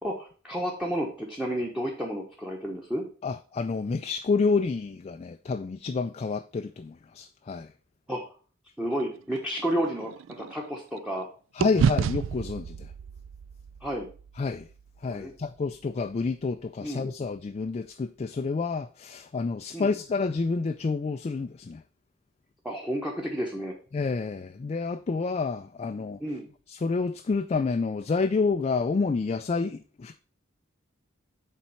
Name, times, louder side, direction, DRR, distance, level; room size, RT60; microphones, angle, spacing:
voice 1, 0.0-3.0 8.1-8.2 8.8-10.1 10.4-11.3 13.8-14.1 15.1-15.3 16.8-17.1 19.7-19.9 22.6-23.7 26.2-26.5, equal, 5° right, 1.1 m, -31 dB
voice 2, 3.2-7.7 11.5-12.9 14.4-14.7 15.0-21.8 23.9-26.2 26.7-30.2, left 4 dB, 35° left, 0.3 m, -29 dB
sound 1, 8.9-11.2 11.6-15.8, right 7 dB, 70° right, 0.3 m, -32 dB
7.4 x 4.2 x 5.6 m
head